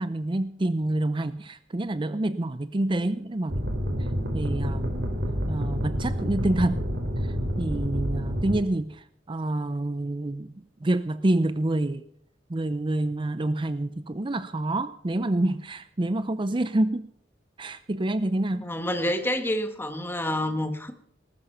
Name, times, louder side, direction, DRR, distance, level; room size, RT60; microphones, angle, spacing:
voice 1, 0.0-3.7 4.0-4.1 4.3-5.1 5.5-6.8 7.2-12.1 12.5-17.1 17.6-18.7, right 1 dB, 30° right, 0.6 m, -27 dB
sound 1, 3.5-8.6, equal, 70° right, 3.0 m, -28 dB
voice 2, 18.6-20.9, left 1 dB, 15° left, 1.6 m, -28 dB
19.5 x 13.0 x 5.7 m
head